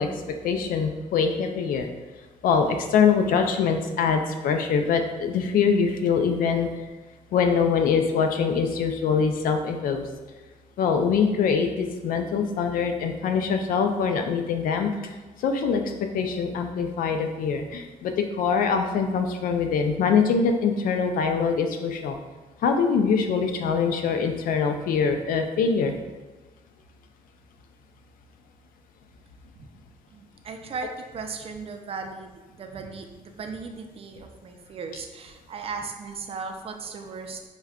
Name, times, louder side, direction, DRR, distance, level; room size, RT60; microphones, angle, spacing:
voice 1, 0.0-1.9 2.4-6.7 7.3-10.1 10.8-15.1 15.4-22.2 22.6-25.9, left 6 dB, 80° left, 5 dB, 0.4 m, -24 dB
voice 2, 30.1-37.5, right 4 dB, 45° right, 4 dB, 0.4 m, -37 dB
4.8 x 2.2 x 2.3 m, 1.2 s
cardioid pair, 75°, 14 cm